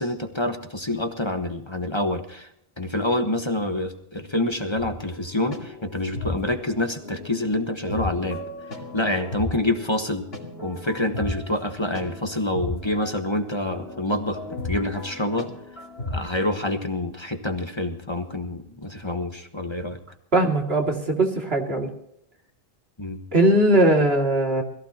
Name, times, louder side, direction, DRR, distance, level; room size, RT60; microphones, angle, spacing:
voice 1, 0.0-2.5 2.8-8.4 8.9-10.3 10.6-15.5 16.1-20.0 23.0-23.2, left 1 dB, 25° left, 5 dB, 1.4 m, -27 dB
sound 1, 4.8-16.2, left 2 dB, 75° left, 2.9 m, -35 dB
voice 2, 20.3-21.9 23.3-24.6, right 1 dB, 75° right, 1 dB, 2.9 m, -20 dB
21.5 x 15.0 x 3.0 m, 0.73 s
omnidirectional pair, 1.0 m